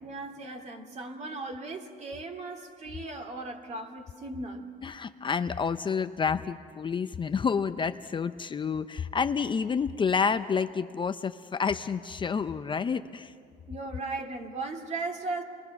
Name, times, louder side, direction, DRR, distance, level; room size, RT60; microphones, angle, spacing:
voice 1, 0.0-4.7 13.7-15.4, right 3 dB, 40° right, 4 dB, 2.4 m, -37 dB
voice 2, 4.8-13.3, left 6 dB, 30° left, 10 dB, 0.5 m, -29 dB
29.0 x 22.0 x 5.9 m, 2.2 s
cardioid pair, 110°, 17 cm